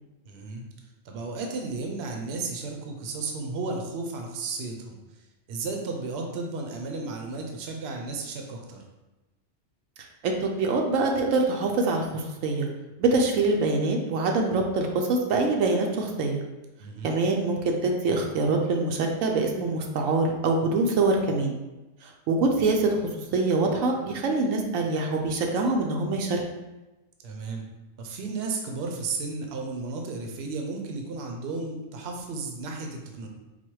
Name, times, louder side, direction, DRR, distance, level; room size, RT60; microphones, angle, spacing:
voice 1, 0.2-0.7 1.0-5.0 5.5-8.8 16.8-17.2 27.2-27.6 28.0-33.3, right 3 dB, 60° right, 2 dB, 0.8 m, -33 dB
voice 2, 10.2-12.7 13.0-16.4 17.0-21.6 22.0-23.0 23.3-26.4, right 3 dB, 85° right, 2 dB, 1.0 m, -24 dB
4.1 x 2.2 x 4.6 m, 1.1 s
omnidirectional pair, 1.3 m